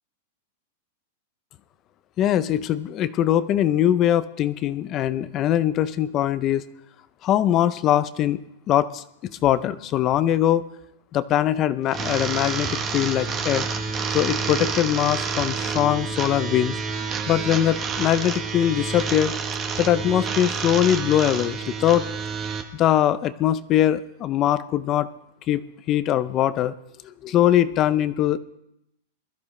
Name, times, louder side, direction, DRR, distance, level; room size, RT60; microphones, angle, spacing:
voice 1, 2.2-6.6 7.2-10.7 11.1-13.7 14.1-16.7 17.3-19.4 19.8-22.0 22.7-25.1 25.5-25.6 25.9-26.7 27.2-28.4, left 11 dB, 25° left, 14 dB, 0.6 m, -22 dB
sound 1, 11.9-22.6, right 5 dB, 20° right, 1.3 m, -29 dB
21.5 x 14.0 x 3.3 m, 0.79 s
supercardioid pair, 165°, 0 cm